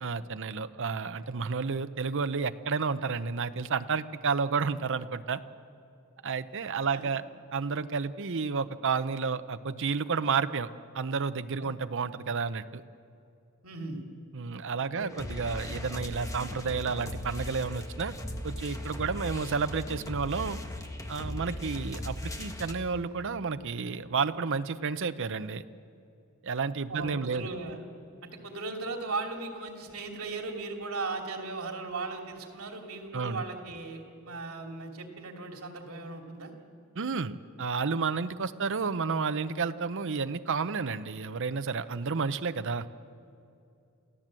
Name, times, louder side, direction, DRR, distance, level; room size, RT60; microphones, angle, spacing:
voice 1, 0.0-5.4 6.2-7.2 7.5-10.7 10.9-12.8 14.3-18.1 18.4-20.6 21.1-25.6 26.4-27.5 33.1-33.4 37.0-42.9, right 5 dB, 60° right, 11 dB, 0.7 m, -31 dB
voice 2, 13.6-14.0 14.9-15.1 26.9-27.8 28.2-36.5, right 3 dB, 75° right, 2 dB, 2.8 m, -37 dB
sound 1, 15.1-22.7, left 1 dB, 15° left, 1.4 m, -38 dB
28.0 x 15.0 x 7.6 m, 2.6 s
head